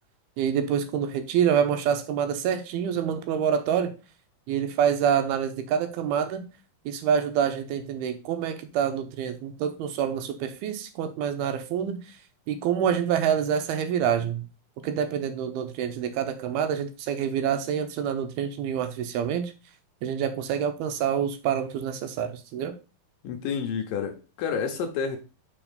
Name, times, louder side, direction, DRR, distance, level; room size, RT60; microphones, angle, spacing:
voice 1, 0.4-3.9 4.5-6.4 6.9-12.0 12.5-14.5 14.8-19.5 20.0-22.7, right 8 dB, 80° right, 2.7 m, -26 dB
voice 2, 23.2-25.2, left 6 dB, 70° left, 2.4 m, -29 dB
6.1 x 4.9 x 5.1 m
omnidirectional pair, 4.5 m